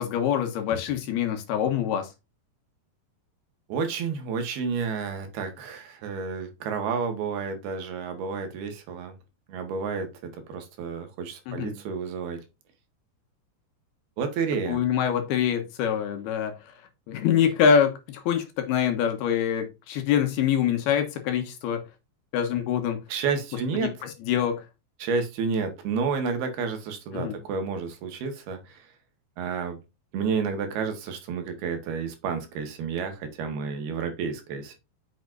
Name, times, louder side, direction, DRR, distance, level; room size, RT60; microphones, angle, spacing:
voice 1, 0.0-2.1 11.5-11.8 14.7-16.5 17.1-21.8 22.3-23.0 23.8-24.6 27.1-27.4, left 8 dB, 70° left, 3.1 m, -25 dB
voice 2, 3.7-9.1 9.5-12.4 14.2-14.8 23.1-23.9 25.0-28.8 29.4-29.8 30.1-34.8, right 5 dB, 70° right, 3.2 m, -30 dB
8.4 x 6.0 x 2.6 m
omnidirectional pair, 4.9 m